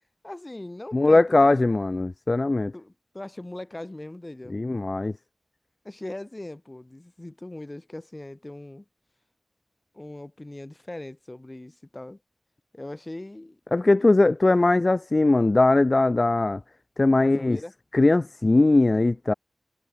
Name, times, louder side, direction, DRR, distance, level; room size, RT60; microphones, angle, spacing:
voice 1, 0.2-1.7 2.7-4.6 5.8-8.8 9.9-12.2 12.7-13.6 17.2-17.7, left 1 dB, 30° left, 4.3 m, -40 dB
voice 2, 0.9-2.7 4.5-5.1 13.7-16.6 17.0-17.6 17.9-19.3, left 2 dB, 45° left, 0.6 m, -20 dB
cardioid pair, 45°, 0 cm